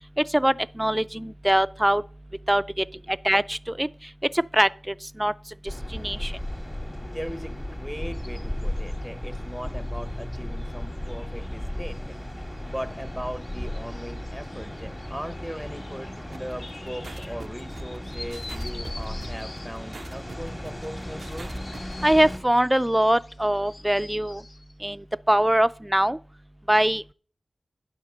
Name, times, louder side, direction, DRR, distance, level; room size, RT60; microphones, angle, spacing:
voice 1, 0.3-2.0 2.5-2.8 3.2-3.9 4.5-4.7 5.2-5.3 5.9-6.3 22.0-24.4 24.8-25.0 25.3-26.2 26.7-27.0, right 1 dB, 10° right, 0.4 m, -22 dB
sound 1, 5.7-22.4, left 1 dB, 25° left, 1.9 m, -35 dB
voice 2, 7.0-12.2 12.6-21.5, equal, 5° left, 0.8 m, -38 dB
sound 2, 8.1-24.7, left 2 dB, 65° left, 0.9 m, -49 dB
sound 3, 16.3-21.9, right 4 dB, 90° right, 0.3 m, -44 dB
10.0 x 5.9 x 5.1 m
wide cardioid pair, 60°, 0 cm